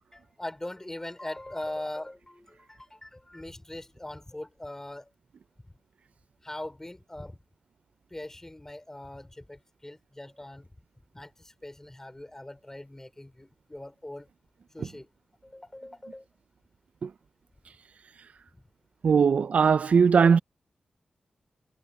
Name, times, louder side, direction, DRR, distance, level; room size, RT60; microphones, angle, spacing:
voice 1, 0.1-5.1 6.4-7.4 8.1-10.7 11.1-14.3 14.7-15.1 15.4-16.2, left 1 dB, 20° left, 4.4 m, -41 dB
voice 2, 19.0-20.4, right 6 dB, 70° right, 0.5 m, -20 dB
cardioid pair, 50°, 2 cm